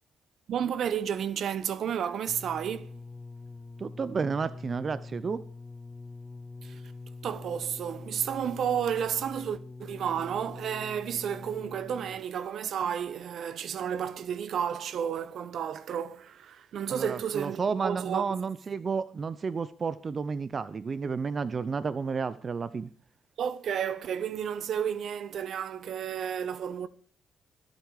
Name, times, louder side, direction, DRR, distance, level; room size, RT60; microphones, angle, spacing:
voice 1, 0.5-2.9 6.6-6.8 7.2-18.4 23.4-26.9, right 8 dB, 65° right, 1.0 m, -32 dB
sound 1, 2.3-12.4 13.2-13.3, left 3 dB, 20° left, 0.9 m, -44 dB
voice 2, 3.8-5.4 16.9-22.9, right 5 dB, 40° right, 0.7 m, -31 dB
24.5 x 8.2 x 4.9 m
cardioid pair, 85°, 0 cm